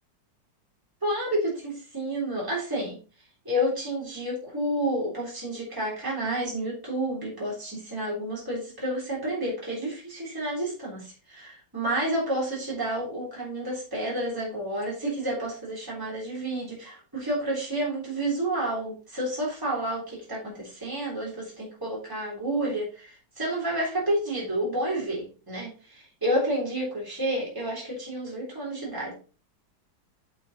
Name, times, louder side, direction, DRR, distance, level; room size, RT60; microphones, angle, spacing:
voice 1, 1.0-3.0 3.5-29.1, right 1 dB, 10° right, -5 dB, 3.6 m, -30 dB
8.4 x 5.6 x 4.2 m, 0.35 s
omnidirectional pair, 2.0 m